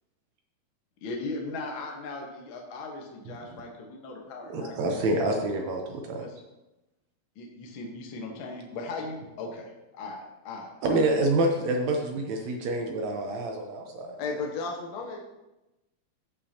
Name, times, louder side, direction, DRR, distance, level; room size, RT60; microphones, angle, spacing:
voice 1, 1.0-5.1 6.2-6.4 7.4-11.1, left 3 dB, 55° left, 1 dB, 1.5 m, -38 dB
voice 2, 4.5-6.3 10.8-14.1, right 2 dB, 75° right, 2 dB, 2.0 m, -27 dB
voice 3, 14.2-15.2, left 4 dB, 70° left, 1 dB, 1.9 m, -33 dB
15.0 x 5.6 x 2.8 m, 0.99 s
omnidirectional pair, 3.4 m